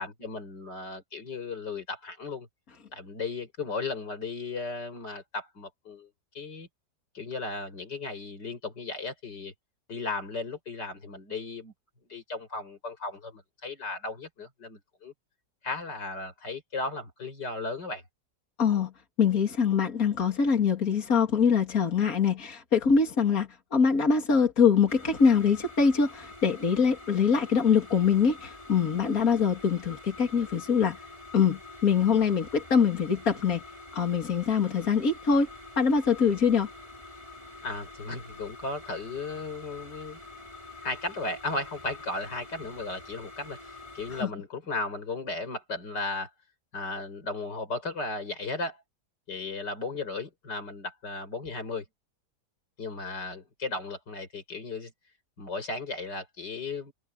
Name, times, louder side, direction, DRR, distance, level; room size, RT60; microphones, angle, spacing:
voice 1, 0.0-2.5 2.9-6.1 6.3-6.7 7.1-9.5 9.9-11.7 12.1-15.1 15.6-18.0 37.6-40.2 40.8-46.3 46.7-48.8 49.3-51.8 52.8-54.9 55.4-56.9, left 3 dB, 85° left, 5.5 m, -35 dB
voice 2, 18.6-18.9 19.2-31.0 31.3-33.6 33.9-35.5 35.8-36.7 44.2-44.3, left 6 dB, 55° left, 3.3 m, -24 dB
sound 1, 24.9-44.2, left 2 dB, 20° left, 6.6 m, -46 dB
open air
omnidirectional pair, 1.8 m